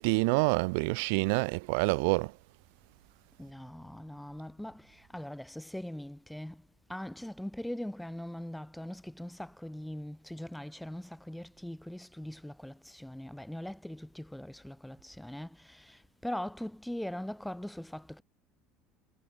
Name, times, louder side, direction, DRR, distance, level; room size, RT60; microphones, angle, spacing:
voice 1, 0.0-2.3, right 29 dB, 80° right, 0.4 m, -27 dB
voice 2, 3.4-6.6 6.9-18.2, left 1 dB, ahead, 4.2 m, -41 dB
cardioid pair, 140°, 0 cm